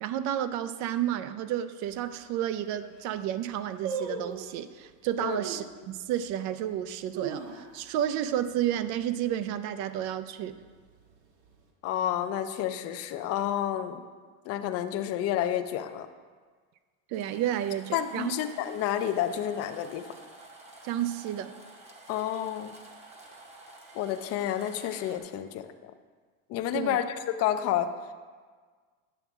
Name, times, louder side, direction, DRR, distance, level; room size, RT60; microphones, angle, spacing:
voice 1, 0.0-10.5 17.1-18.3 20.8-21.5 26.7-27.0, right 11 dB, 50° right, 12 dB, 0.4 m, -31 dB
sound 1, 1.8-1.9 2.5-2.6 2.8-3.2 3.8-4.6 5.3-5.7 6.3-6.4 6.9-8.0 8.3-8.4 8.7-9.1 9.5-9.9 10.5-11.3 11.5-11.6, right 5 dB, 70° right, 1.4 m, -37 dB
voice 2, 11.8-14.1 14.5-16.1 17.9-20.1 22.1-22.8 23.9-25.9 26.5-27.9, left 11 dB, 40° left, 9 dB, 0.5 m, -30 dB
sound 2, 17.1-25.2, right 2 dB, 15° right, 0.7 m, -50 dB
9.1 x 7.0 x 3.5 m, 1.5 s
cardioid pair, 155°, 39 cm